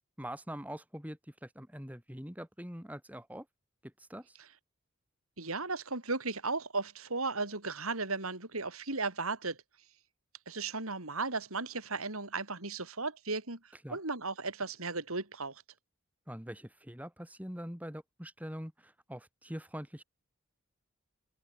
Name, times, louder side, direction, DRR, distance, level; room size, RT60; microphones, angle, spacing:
voice 1, 0.2-3.5 3.8-4.4 13.8-14.0 16.3-20.0, equal, 5° right, 4.5 m, -44 dB
voice 2, 5.4-9.6 10.5-15.6, right 3 dB, 85° right, 5.0 m, -35 dB
open air
head